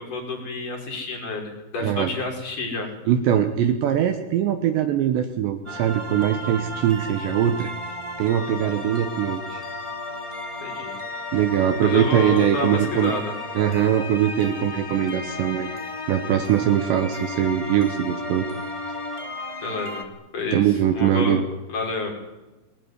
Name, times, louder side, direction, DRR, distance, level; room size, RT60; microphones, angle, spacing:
voice 1, 0.0-2.9 10.6-10.9 11.8-13.3 19.6-20.0 20.3-21.4 21.7-22.1, left 3 dB, 40° left, 1 dB, 6.9 m, -29 dB
voice 2, 1.8-2.1 3.1-7.7 8.2-9.6 11.3-13.1 13.5-15.7 16.1-18.5 20.5-21.4, right 10 dB, 70° right, 8 dB, 3.1 m, -22 dB
sound 1, 5.6-20.0, left 2 dB, 10° left, 1.7 m, -34 dB
24.0 x 20.5 x 9.8 m, 1.1 s
omnidirectional pair, 6.0 m